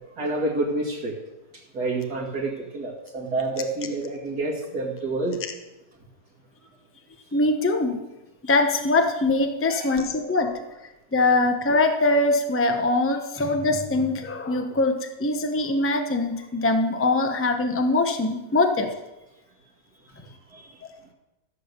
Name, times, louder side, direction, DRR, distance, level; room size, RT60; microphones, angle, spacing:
voice 1, 0.2-1.2 1.7-5.4 9.7-10.0 20.5-20.6, right 2 dB, 80° right, -5 dB, 2.5 m, -28 dB
voice 2, 7.3-8.0 8.4-10.6 11.1-18.9, left 2 dB, 10° left, 5 dB, 0.8 m, -22 dB
14.5 x 7.6 x 6.7 m, 1.0 s
omnidirectional pair, 1.6 m